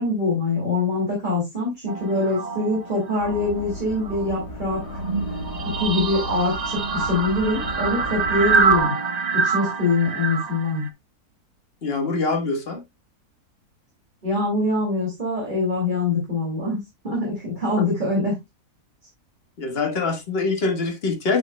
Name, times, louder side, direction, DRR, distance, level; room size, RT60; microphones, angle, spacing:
voice 1, 0.0-5.0 5.6-8.9 9.3-10.9 14.2-18.4, left 2 dB, 30° right, 2.7 m, -24 dB
sound 1, 1.9-3.6 3.9-10.9, right 5 dB, 65° right, 0.4 m, -26 dB
sound 2, 3.2-8.8, left 1 dB, 85° left, 1.8 m, -35 dB
voice 2, 11.8-12.8 19.6-21.4, left 3 dB, 40° left, 1.6 m, -24 dB
9.1 x 6.4 x 2.2 m
omnidirectional pair, 1.6 m